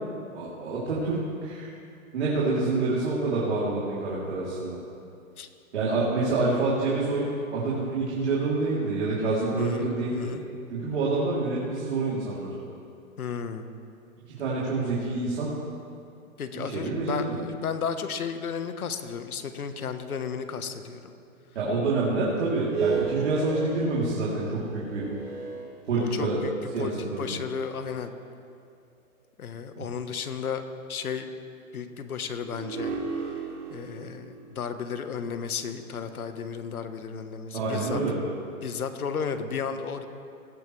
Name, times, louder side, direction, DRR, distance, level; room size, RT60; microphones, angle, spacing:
voice 1, 0.3-1.2 1.4-1.7 2.1-4.8 5.7-10.3 10.7-12.5 14.3-15.5 16.5-17.4 21.5-25.0 25.9-26.4 26.7-27.4 29.8-29.9 37.5-38.1, right 3 dB, 50° right, -7 dB, 3.2 m, -27 dB
voice 2, 9.6-10.4 13.2-13.7 16.4-21.1 25.5-25.7 25.9-26.5 26.8-28.1 29.4-30.6 30.9-31.3 31.7-32.9 33.7-38.0 38.6-40.1, left 6 dB, 85° left, 9 dB, 1.3 m, -33 dB
sound 1, 22.5-26.4 27.1-27.2 32.4-36.7, right 5 dB, 80° right, 2.9 m, -34 dB
19.5 x 8.6 x 3.2 m, 2.4 s
hypercardioid pair, 170°, 43 cm